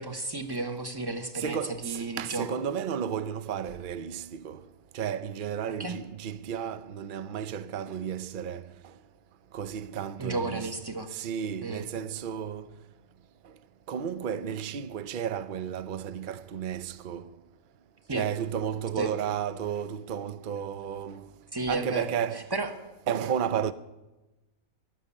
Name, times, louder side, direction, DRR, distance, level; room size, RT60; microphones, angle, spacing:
voice 1, 0.0-2.5 5.8-5.9 10.2-11.1 11.6-11.8 18.1-18.2 19.0-19.1 21.5-22.1 22.3-22.7, right 2 dB, 15° right, 1.2 m, -33 dB
voice 2, 1.4-4.6 4.9-8.6 9.5-10.7 11.1-12.7 13.9-17.3 18.1-21.3 21.7-22.4 23.1-23.7, right 8 dB, 50° right, 0.7 m, -33 dB
13.0 x 12.0 x 8.4 m
omnidirectional pair, 1.5 m